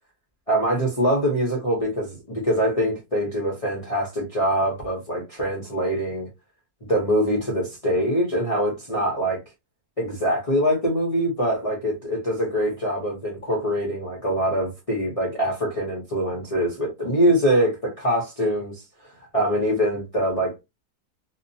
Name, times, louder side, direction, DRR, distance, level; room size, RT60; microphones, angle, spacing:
voice 1, 0.5-6.3 6.9-9.4 10.0-18.8 19.3-20.6, equal, 30° left, 0.7 m, -24 dB
2.7 x 2.2 x 2.6 m
omnidirectional pair, 1.5 m